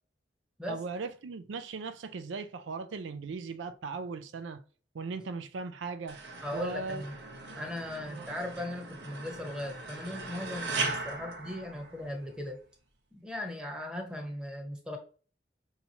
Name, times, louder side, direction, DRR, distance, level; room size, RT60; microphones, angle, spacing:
voice 1, 0.7-4.6 4.9-6.2 6.5-7.0 8.1-8.3, right 4 dB, 90° right, 0.4 m, -38 dB
sound 1, 6.1-12.4, right 3 dB, 65° right, 0.8 m, -39 dB
voice 2, 6.4-7.2 7.5-12.6 13.1-15.0, left 1 dB, 5° right, 0.8 m, -38 dB
5.6 x 2.8 x 2.8 m
head